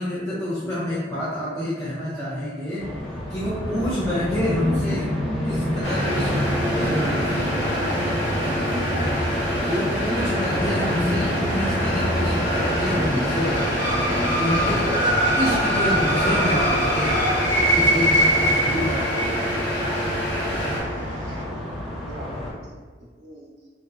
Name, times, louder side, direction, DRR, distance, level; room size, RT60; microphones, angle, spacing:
voice 1, 0.0-2.8 3.3-5.1 5.4-7.5 9.6-13.6 14.4-14.8 15.4-17.1 17.5-19.3, left 1 dB, 15° left, -8 dB, 0.5 m, -27 dB
sound 1, 2.8-22.5, equal, ahead, 0.9 m, -29 dB
voice 2, 3.7-4.0 6.0-6.4 8.4-8.8 14.5-14.9 21.5-22.5 23.2-23.5, right 1 dB, 75° right, -4 dB, 0.6 m, -40 dB
sound 2, 5.8-20.8, equal, 85° left, 1.2 m, -27 dB
sound 3, 11.5-21.4, right 1 dB, 50° left, 0.8 m, -24 dB
3.1 x 2.7 x 2.4 m, 1.5 s
head